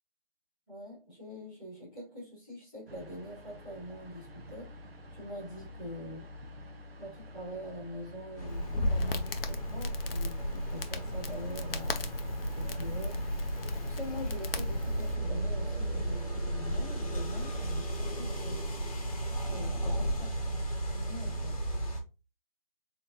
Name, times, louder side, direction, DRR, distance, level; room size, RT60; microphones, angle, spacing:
voice 1, 0.7-4.8 5.1-6.3 7.0-12.1 12.5-13.2 13.8-18.6 19.4-20.1 20.9-21.7, equal, ahead, 1.4 m, -44 dB
sound 1, 2.9-17.8, left 1 dB, 85° right, 1.3 m, -48 dB
sound 2, 8.4-22.0, right 1 dB, 35° left, 1.2 m, -34 dB
Crackle, 8.5-15.1, left 2 dB, 75° left, 0.8 m, -37 dB
4.4 x 3.7 x 2.8 m
hypercardioid pair, 180°, 29 cm